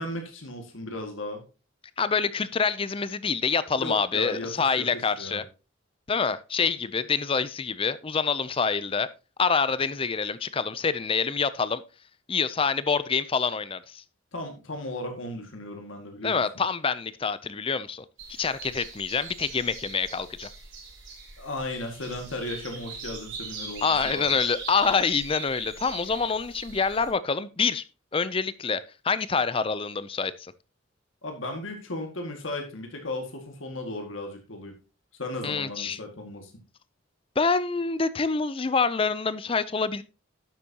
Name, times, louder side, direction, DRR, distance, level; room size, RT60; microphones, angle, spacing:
voice 1, 0.0-1.4 3.8-4.5 4.8-4.9 5.2-5.4 14.3-16.4 21.4-24.3 31.2-34.7 35.2-36.5, left 2 dB, 75° left, 4 dB, 2.0 m, -35 dB
voice 2, 2.0-5.4 6.1-9.1 9.4-11.8 12.3-14.0 16.2-18.0 18.4-20.5 23.8-27.8 28.1-30.5 35.4-36.0 37.4-40.0, left 5 dB, 25° left, 16 dB, 0.5 m, -26 dB
sound 1, 18.2-27.1, right 4 dB, 65° right, 5.4 m, -41 dB
11.5 x 8.3 x 2.9 m, 0.31 s
head